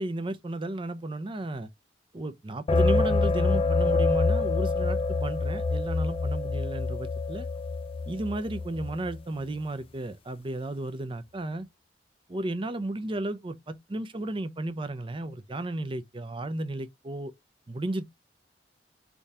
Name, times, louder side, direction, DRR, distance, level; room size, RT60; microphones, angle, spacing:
voice 1, 0.0-1.7 2.1-7.5 8.1-11.7 12.3-17.3 17.7-18.0, right 1 dB, 30° right, 0.6 m, -33 dB
sound 1, 2.7-9.2, left 3 dB, 30° left, 0.4 m, -26 dB
3.6 x 2.7 x 4.6 m
head